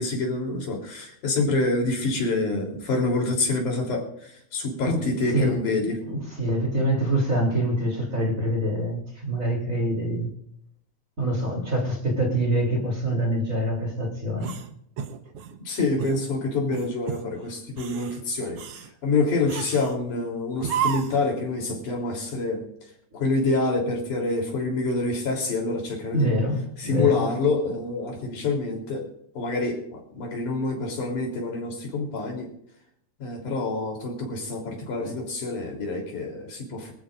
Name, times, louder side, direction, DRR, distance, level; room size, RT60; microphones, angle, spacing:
voice 1, 0.0-6.0 15.6-22.6 23.1-26.3 26.8-29.1 29.3-32.5 33.2-36.9, left 3 dB, 85° left, 0 dB, 5.0 m, -27 dB
voice 2, 4.8-5.6 6.0-10.3 11.2-14.5 26.1-27.2 35.0-35.1, right 1 dB, 25° right, 0 dB, 3.4 m, -25 dB
sound 1, 14.4-15.6 16.0-16.2 16.7-17.3 17.7-18.2 18.6-18.9 19.5-20.0 20.6-21.3, right 8 dB, 65° right, 1.8 m, -32 dB
24.5 x 14.0 x 2.5 m, 0.69 s
omnidirectional pair, 3.4 m